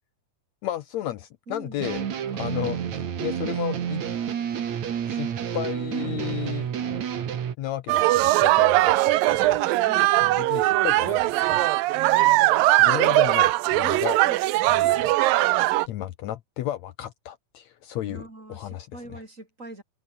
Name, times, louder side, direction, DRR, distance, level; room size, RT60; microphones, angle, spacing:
voice 1, 0.6-2.0 2.3-4.0 5.1-5.3 5.5-6.7 7.6-9.6 10.2-11.6 12.8-14.2 14.6-15.1 15.9-18.2 18.5-19.2, left 13 dB, 90° left, 1.6 m, -33 dB
voice 2, 1.5-1.8 5.9-6.2 9.9-10.4 12.8-13.5 13.8-14.4 18.0-19.8, right 2 dB, 20° right, 4.9 m, -43 dB
sound 1, 1.8-7.5, right 8 dB, 50° right, 3.1 m, -29 dB
sound 2, 7.9-15.9, right 17 dB, 75° right, 2.4 m, -20 dB
omnidirectional pair, 4.4 m